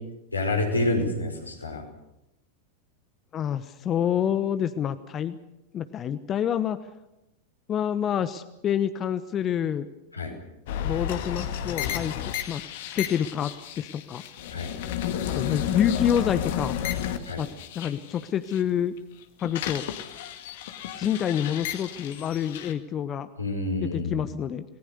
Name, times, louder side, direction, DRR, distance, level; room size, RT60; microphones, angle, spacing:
voice 1, 0.3-1.8 10.1-10.3 14.5-14.7 17.3-17.4 23.4-24.2, left 2 dB, 85° left, 2 dB, 5.3 m, -28 dB
voice 2, 3.3-5.4 5.7-6.8 7.7-9.9 10.8-12.1 12.5-12.6 12.9-14.2 15.3-16.7 17.4-17.5 17.7-18.9 19.4-19.8 21.0-23.3 23.9-24.6, left 9 dB, 30° left, 13 dB, 1.1 m, -27 dB
sound 1, 10.7-18.6 19.0-22.7, left 10 dB, 55° left, 2.1 m, -32 dB
28.0 x 19.0 x 6.8 m, 0.93 s
figure-of-eight pair, 90°, 0 cm